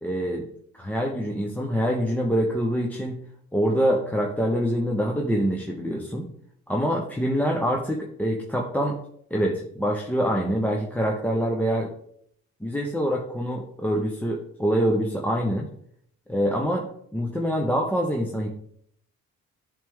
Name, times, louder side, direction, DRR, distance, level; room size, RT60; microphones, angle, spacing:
voice 1, 0.0-0.5 0.8-3.2 3.5-6.3 6.7-9.0 9.3-11.9 12.6-15.7 16.3-16.9 17.1-18.5, equal, 5° left, 0 dB, 0.8 m, -25 dB
8.6 x 3.4 x 3.6 m, 0.67 s
cardioid pair, 90°, 30 cm